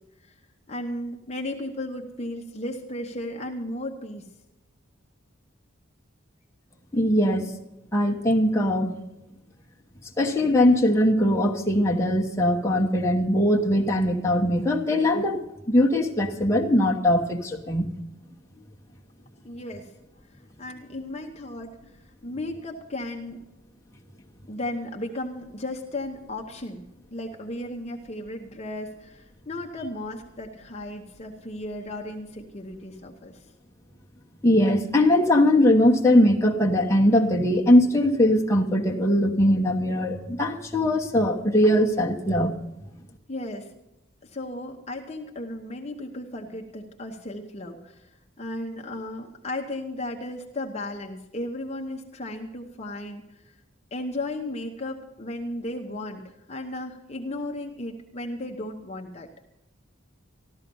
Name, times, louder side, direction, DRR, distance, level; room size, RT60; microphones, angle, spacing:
voice 1, 0.7-4.3 19.4-19.9 20.6-21.8 22.2-23.4 24.5-26.8 27.1-33.5 43.3-43.7 44.2-48.1 48.4-53.5 53.9-59.3, left 1 dB, 30° left, 1 dB, 1.0 m, -35 dB
voice 2, 6.9-7.4 7.9-8.9 10.2-15.4 15.7-17.9 34.4-42.5, left 1 dB, 15° left, -2 dB, 1.2 m, -21 dB
14.0 x 12.5 x 5.4 m, 0.92 s
head